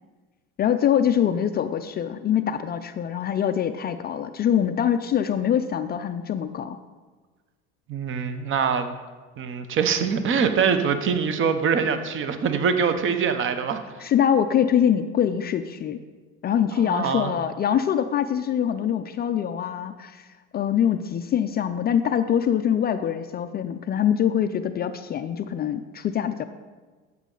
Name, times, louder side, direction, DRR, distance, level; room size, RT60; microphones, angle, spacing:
voice 1, 0.6-6.8 14.0-16.0 16.4-20.3 20.5-26.4, left 9 dB, 30° left, 9 dB, 0.4 m, -24 dB
voice 2, 7.9-8.9 9.4-13.8 16.8-17.3, right 6 dB, 35° right, 9 dB, 1.0 m, -24 dB
13.5 x 7.4 x 3.9 m, 1.4 s
supercardioid pair, 115°, 35 cm